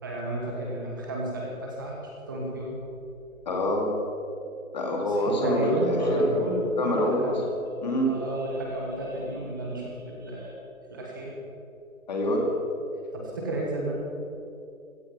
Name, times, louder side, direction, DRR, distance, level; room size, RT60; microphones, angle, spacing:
voice 1, 0.0-2.0 2.3-2.8 5.1-7.5 8.0-10.6 10.9-11.4 13.1-14.0, right 1 dB, 15° right, -2 dB, 1.3 m, -31 dB
voice 2, 3.5-3.9 4.7-6.4 6.8-7.3 7.8-8.1 12.1-12.4, left 1 dB, 30° left, 1 dB, 2.6 m, -26 dB
16.0 x 13.0 x 5.3 m, 2.6 s
hypercardioid pair, 170°, 42 cm